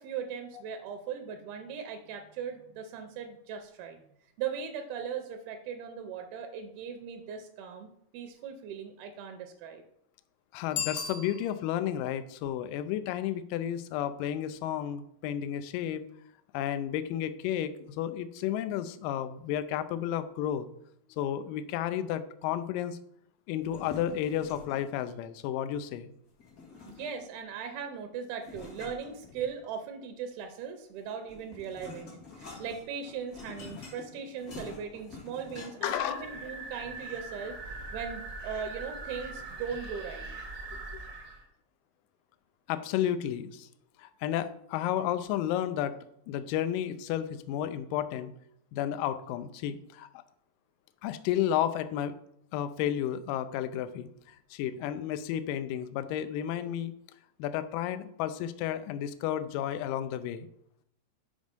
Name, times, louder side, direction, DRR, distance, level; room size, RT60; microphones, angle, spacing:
voice 1, 0.0-4.0 4.4-7.9 8.1-9.8 26.9-37.6 37.9-40.3, right 7 dB, 85° right, 6 dB, 2.6 m, -39 dB
voice 2, 10.5-16.0 16.5-20.7 21.2-23.0 23.5-26.1 35.8-36.3 40.9-41.0 42.7-43.7 44.0-45.9 46.3-48.3 48.7-50.2 51.0-52.1 52.5-56.9 57.4-60.5, left 10 dB, 80° left, 11 dB, 2.0 m, -32 dB
Bicycle bell, 10.7-11.9, left 7 dB, 60° left, 2.1 m, -36 dB
sound 1, 23.6-25.0 26.4-27.4 28.4-29.8 31.0-36.0, left 4 dB, 45° left, 1.2 m, -47 dB
sound 2, 35.8-41.4, right 3 dB, 55° right, 0.9 m, -41 dB
6.3 x 5.2 x 5.2 m, 0.71 s
omnidirectional pair, 4.3 m